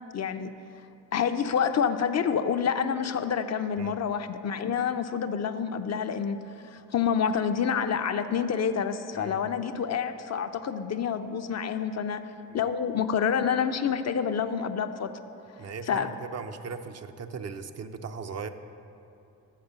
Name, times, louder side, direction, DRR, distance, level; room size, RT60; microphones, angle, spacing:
voice 1, 0.1-0.5 1.1-6.4 6.6-12.2 12.5-15.1 15.9-16.1, left 7 dB, 45° left, 9 dB, 0.5 m, -28 dB
voice 2, 15.6-18.5, right 5 dB, 40° right, 8 dB, 0.5 m, -38 dB
6.5 x 5.8 x 6.6 m, 2.7 s
hypercardioid pair, 45°, 39 cm